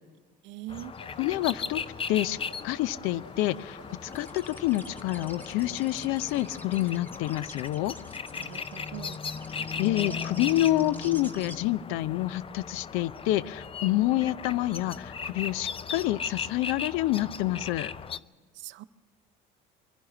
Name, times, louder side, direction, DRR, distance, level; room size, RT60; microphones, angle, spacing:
voice 1, 0.4-0.9 8.3-9.2 18.5-18.8, right 14 dB, 60° right, 13 dB, 0.7 m, -42 dB
sound 1, 0.7-18.2, left 6 dB, 25° left, 0.6 m, -38 dB
sound 2, 0.9-6.9, left 1 dB, 55° left, 6.7 m, -51 dB
voice 2, 1.2-1.8 2.1-2.4 2.6-8.0 9.8-17.9, left 15 dB, 70° left, 19 dB, 0.6 m, -28 dB
sound 3, 4.1-11.6, equal, 10° left, 1.5 m, -47 dB
24.0 x 11.0 x 9.9 m, 1.5 s
supercardioid pair, 85°, 21 cm